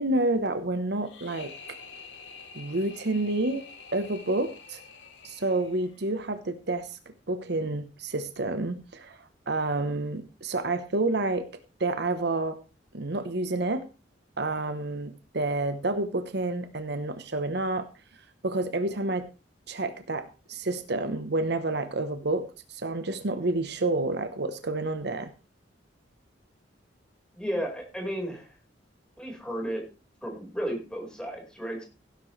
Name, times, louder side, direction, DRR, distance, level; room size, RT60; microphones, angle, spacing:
voice 1, 0.0-1.5 2.5-3.6 3.9-4.8 5.2-7.0 7.3-11.5 11.8-12.6 12.9-13.9 14.4-17.9 18.4-19.3 19.7-25.3, right 2 dB, 65° right, 10 dB, 1.0 m, -29 dB
sound 1, 1.0-6.1, left 5 dB, 75° left, 2.5 m, -47 dB
voice 2, 27.3-28.5 29.2-29.8 30.2-31.8, equal, 5° left, 0 dB, 4.7 m, -33 dB
16.5 x 10.5 x 3.3 m, 0.33 s
head